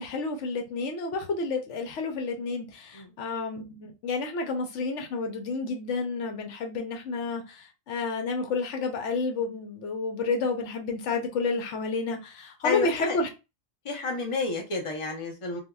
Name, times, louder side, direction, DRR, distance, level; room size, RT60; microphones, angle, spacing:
voice 1, 0.0-13.3, left 3 dB, 80° left, 1.0 m, -30 dB
voice 2, 12.6-13.2 13.8-15.6, left 4 dB, 30° left, 0.7 m, -30 dB
3.5 x 2.3 x 2.2 m
omnidirectional pair, 1.2 m